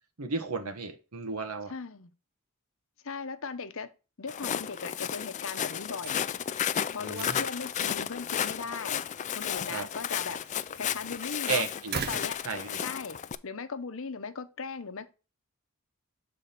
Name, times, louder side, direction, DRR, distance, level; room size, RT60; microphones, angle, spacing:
voice 1, 0.2-1.7 7.0-7.4 9.7-9.9 11.5-12.0 12.4-12.8, right 4 dB, 90° right, 1.3 m, -33 dB
voice 2, 1.7-2.1 3.0-3.9 4.2-6.2 6.9-9.1 9.3-10.4 10.7-11.7 11.9-12.4 12.8-13.2 13.4-15.1, left 5 dB, 65° left, 0.8 m, -38 dB
Walk footsteps, 4.3-13.4, left 9 dB, 35° left, 0.3 m, -33 dB
sound 1, 5.8-13.3, right 6 dB, 45° right, 0.5 m, -44 dB
6.8 x 3.7 x 5.8 m
head